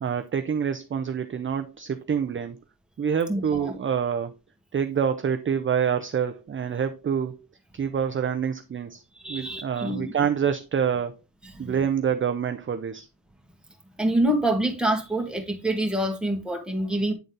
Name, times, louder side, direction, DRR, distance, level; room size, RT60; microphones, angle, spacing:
voice 1, 0.0-2.6 3.0-4.3 4.7-7.4 7.7-9.0 9.3-11.2 11.6-13.1, right 7 dB, 35° right, 0.5 m, -26 dB
voice 2, 3.3-3.7 9.2-10.1 11.5-11.7 14.0-17.1, right 1 dB, ahead, 1.7 m, -26 dB
9.3 x 4.0 x 3.8 m
wide cardioid pair, 110°, 38 cm